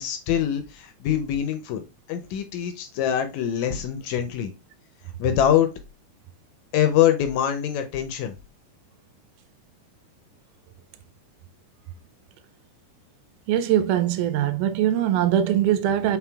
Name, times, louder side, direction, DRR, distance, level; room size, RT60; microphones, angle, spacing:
voice 1, 0.0-1.8 2.1-4.5 5.2-5.7 6.7-8.3, left 10 dB, 80° left, 1.7 m, -24 dB
voice 2, 13.5-16.2, right 10 dB, 85° right, 2.1 m, -22 dB
5.9 x 3.7 x 2.2 m
omnidirectional pair, 3.6 m